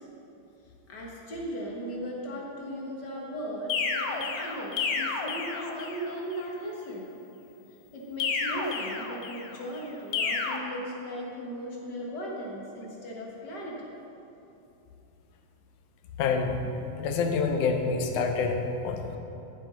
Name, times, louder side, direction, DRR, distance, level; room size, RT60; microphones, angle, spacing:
voice 1, 0.9-7.1 7.9-13.9, equal, 45° left, -3 dB, 1.5 m, -37 dB
sound 1, 3.7-6.1 8.2-9.6 10.1-10.6, left 5 dB, 70° left, 1.5 m, -31 dB
voice 2, 16.2-16.6 17.0-19.2, left 4 dB, 85° left, 4 dB, 2.3 m, -27 dB
14.0 x 7.7 x 3.8 m, 2.9 s
omnidirectional pair, 3.4 m